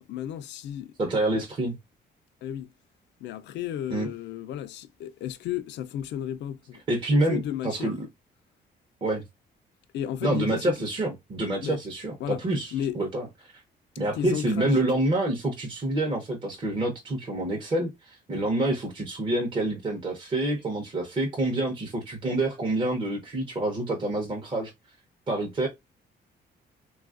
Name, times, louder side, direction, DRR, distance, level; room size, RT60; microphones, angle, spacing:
voice 1, 0.0-0.9 1.3-1.4 2.4-2.7 3.2-6.8 7.3-7.9 9.9-10.8 11.6-11.8 12.2-12.4 12.7-13.0 14.2-14.8, left 10 dB, 80° left, 0.4 m, -33 dB
voice 2, 1.0-1.8 3.9-4.1 6.9-8.1 9.0-9.2 10.2-13.5 14.0-24.7 25.3-25.7, right 1 dB, 25° right, 0.7 m, -27 dB
3.2 x 2.3 x 2.3 m
cardioid pair, 130°, 18 cm